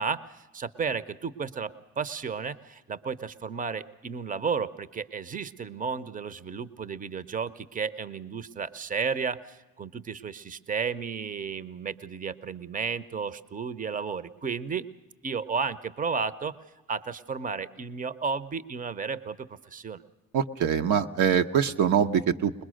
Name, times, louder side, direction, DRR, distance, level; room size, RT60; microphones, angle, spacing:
voice 1, 0.0-14.9 15.2-16.6 16.9-20.0, right 5 dB, 25° right, 15 dB, 0.7 m, -33 dB
voice 2, 20.3-22.6, right 8 dB, 75° right, 6 dB, 0.9 m, -24 dB
21.5 x 21.0 x 6.4 m, 1.1 s
cardioid pair, 90°, 30 cm